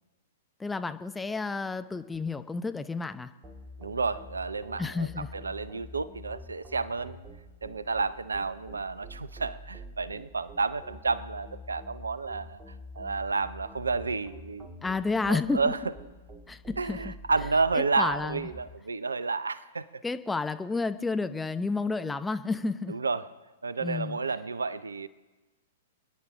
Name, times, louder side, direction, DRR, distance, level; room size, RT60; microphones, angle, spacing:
voice 1, 0.6-3.3 4.8-5.3 14.8-15.7 16.5-17.1 17.8-18.4 20.0-22.9 23.8-24.2, left 3 dB, 10° left, 9 dB, 0.7 m, -31 dB
sound 1, 3.4-18.7, equal, 20° right, 2.3 m, -47 dB
voice 2, 3.8-7.2 7.6-12.6 13.0-14.7 15.3-15.8 16.8-20.0 22.9-23.2 23.6-25.1, right 4 dB, 75° right, 18 dB, 0.6 m, -31 dB
28.0 x 10.5 x 3.7 m, 1.2 s
figure-of-eight pair, 105°, 0 cm